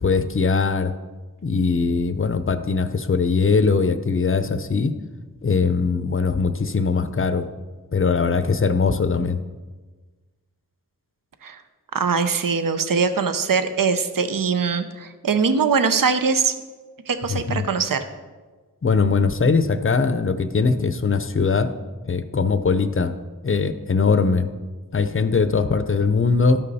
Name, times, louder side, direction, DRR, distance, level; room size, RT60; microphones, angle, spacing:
voice 1, 0.0-0.9 1.4-4.9 5.4-7.5 7.9-9.4 17.3-17.7 18.8-21.7 22.0-23.1 23.4-24.5 24.9-26.6, left 4 dB, 35° left, 11 dB, 0.6 m, -21 dB
voice 2, 11.9-16.5 17.1-18.0, right 5 dB, 65° right, 10 dB, 0.7 m, -22 dB
12.5 x 5.5 x 4.1 m, 1.3 s
wide cardioid pair, 50°, 35 cm